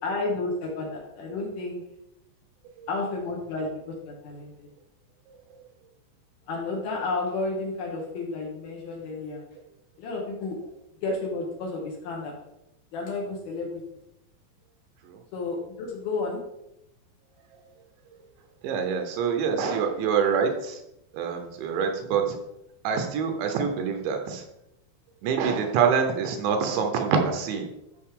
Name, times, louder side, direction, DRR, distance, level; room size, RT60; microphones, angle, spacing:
voice 1, 0.0-1.8 2.9-4.7 6.5-9.4 10.0-10.6 11.0-12.4 12.9-13.8 15.3-16.4, left 3 dB, 65° left, -1 dB, 2.7 m, -31 dB
voice 2, 5.3-5.6 15.0-15.2 18.6-20.8 21.1-22.4 22.8-24.4 25.2-27.7, right 6 dB, 75° right, 5 dB, 2.9 m, -26 dB
13.0 x 5.2 x 3.7 m, 0.86 s
omnidirectional pair, 5.5 m